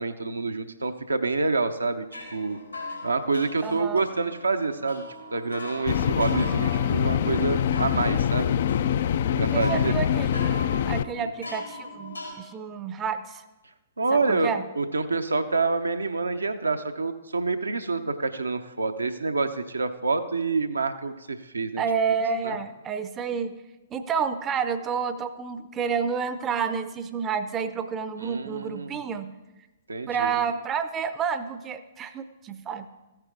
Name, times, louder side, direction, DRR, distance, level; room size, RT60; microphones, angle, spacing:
voice 1, 0.0-2.1 2.3-2.6 3.0-5.0 5.3-8.5 9.4-9.9 11.2-11.3 14.0-14.5 14.8-21.8 22.4-22.6 28.2-29.0 29.9-30.4, right 3 dB, 80° right, 8 dB, 0.7 m, -27 dB
sound 1, 2.0-12.3, left 2 dB, 90° left, 3.7 m, -40 dB
voice 2, 3.6-4.0 9.5-13.4 14.1-14.6 21.8-23.5 23.9-29.3 30.1-32.9, right 6 dB, 20° right, 11 dB, 0.6 m, -29 dB
sound 2, 5.9-11.0, left 9 dB, 50° left, 0.3 m, -24 dB
14.0 x 8.9 x 3.9 m, 1.1 s
figure-of-eight pair, 115°, 0 cm